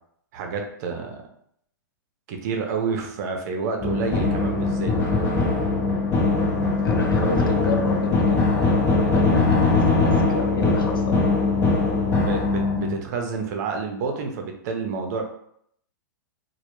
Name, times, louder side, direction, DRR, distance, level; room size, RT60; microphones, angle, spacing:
voice 1, 0.3-1.2 2.3-4.9 12.1-15.2, right 5 dB, 50° right, 3 dB, 0.5 m, -29 dB
sound 1, 3.8-13.0, left 3 dB, 25° left, 0.6 m, -21 dB
voice 2, 6.8-11.2, left 4 dB, 85° left, 3 dB, 0.5 m, -30 dB
2.1 x 2.0 x 3.0 m, 0.70 s
hypercardioid pair, 120°, 11 cm